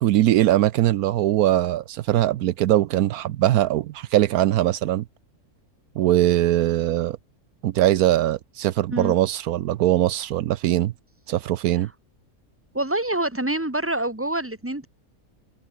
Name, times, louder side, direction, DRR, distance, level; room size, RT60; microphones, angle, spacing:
voice 1, 0.0-5.0 6.0-7.2 7.6-10.9 11.3-11.9, right 14 dB, 80° right, 1.1 m, -21 dB
voice 2, 12.7-14.9, right 1 dB, 10° right, 2.4 m, -26 dB
omnidirectional pair, 1.6 m